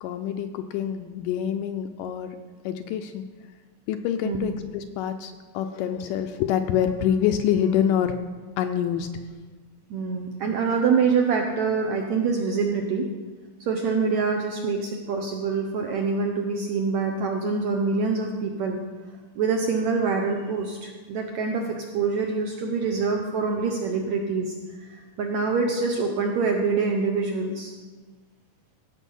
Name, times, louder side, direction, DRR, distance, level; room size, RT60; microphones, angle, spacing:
voice 1, 0.0-2.4 2.7-3.2 3.9-8.2 8.6-9.1, left 9 dB, 80° left, 7 dB, 2.0 m, -26 dB
voice 2, 4.2-4.5 9.9-13.1 13.6-18.8 19.4-27.7, right 4 dB, 75° right, 2 dB, 1.7 m, -25 dB
16.5 x 6.4 x 5.5 m, 1.3 s
omnidirectional pair, 4.1 m